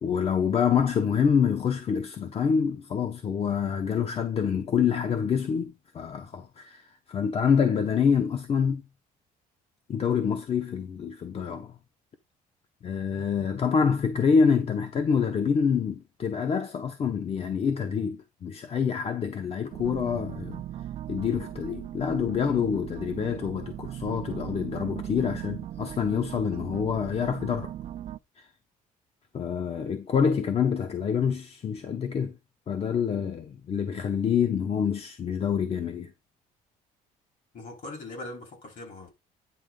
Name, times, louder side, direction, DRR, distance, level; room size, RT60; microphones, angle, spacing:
voice 1, 0.0-8.8 9.9-11.7 12.8-20.6 21.1-27.7 28.4-28.5 29.3-32.3 32.7-36.1, left 6 dB, 40° left, 1.0 m, -26 dB
sound 1, 19.7-28.2, right 12 dB, 45° right, 0.5 m, -38 dB
voice 2, 37.5-39.1, left 2 dB, 60° left, 4.2 m, -40 dB
9.8 x 5.3 x 3.8 m
cardioid pair, 110°, 15 cm